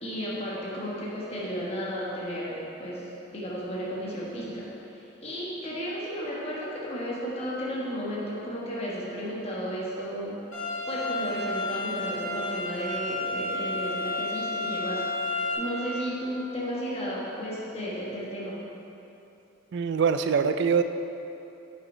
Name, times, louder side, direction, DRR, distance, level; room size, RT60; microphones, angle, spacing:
voice 1, 0.0-10.4 10.9-18.6, equal, 30° left, -6 dB, 1.2 m, -34 dB
sound 1, 10.5-15.5, left 2 dB, 70° left, 1.6 m, -31 dB
voice 2, 19.7-20.8, right 6 dB, 55° right, 9 dB, 0.3 m, -23 dB
6.7 x 5.7 x 5.4 m, 2.9 s
head